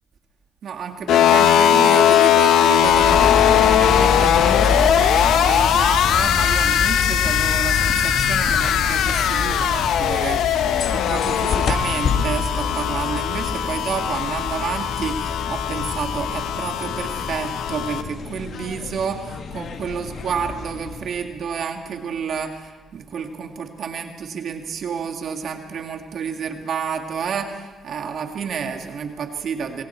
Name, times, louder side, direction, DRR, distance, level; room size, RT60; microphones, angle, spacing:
voice 1, 0.6-10.4 10.9-29.8, right 6 dB, 60° right, 4 dB, 2.0 m, -30 dB
sound 1, 1.1-18.0, left 9 dB, 80° left, 1.3 m, -19 dB
sound 2, 2.8-21.3, left 4 dB, 60° left, 2.0 m, -28 dB
25.0 x 24.0 x 4.5 m, 1.3 s
cardioid pair, 90°, 0 cm